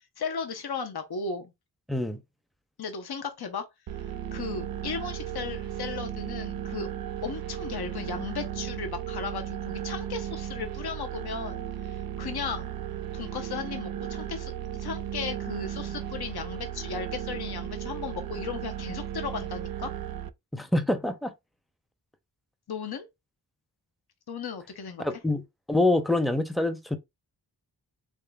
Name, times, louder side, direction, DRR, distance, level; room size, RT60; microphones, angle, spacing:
voice 1, 0.2-1.5 2.8-3.7 4.3-6.9 7.2-12.7 13.1-19.9 22.7-23.1 24.3-25.2, left 5 dB, 65° left, 0.8 m, -36 dB
voice 2, 1.9-2.2 20.5-21.3 25.0-25.4 25.7-27.0, left 2 dB, ahead, 0.6 m, -25 dB
sound 1, 3.9-20.3, right 10 dB, 60° right, 0.5 m, -35 dB
3.7 x 3.6 x 2.2 m
wide cardioid pair, 75°, 42 cm